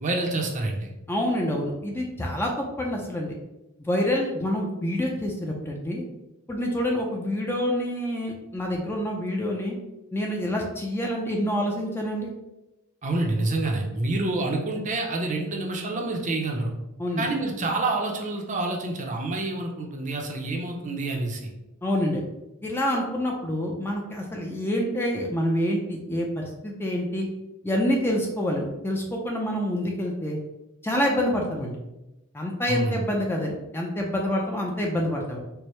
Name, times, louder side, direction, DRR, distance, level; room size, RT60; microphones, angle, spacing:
voice 1, 0.0-0.9 13.0-16.7 17.2-21.4 32.7-33.0, right 2 dB, 35° right, 1 dB, 0.6 m, -27 dB
voice 2, 1.1-3.3 3.8-6.0 6.5-9.8 10.1-12.3 17.0-17.3 21.8-22.2 22.6-27.3 27.6-30.4 30.8-31.8 32.3-35.4, equal, 10° left, 0 dB, 0.4 m, -27 dB
4.5 x 2.0 x 3.1 m, 0.95 s
head